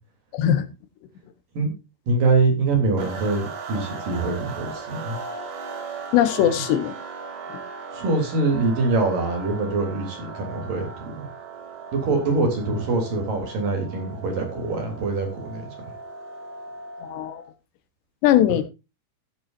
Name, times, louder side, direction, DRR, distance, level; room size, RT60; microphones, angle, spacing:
voice 1, 0.3-0.7 6.1-6.9 7.5-7.6 17.0-17.4 18.2-18.6, left 11 dB, 85° left, 3.3 m, -20 dB
voice 2, 2.1-5.2 7.9-11.3 11.9-15.7, right 3 dB, 55° right, 4.8 m, -24 dB
sound 1, 3.0-17.5, right 5 dB, 75° right, 4.7 m, -38 dB
14.5 x 9.4 x 2.6 m
omnidirectional pair, 4.9 m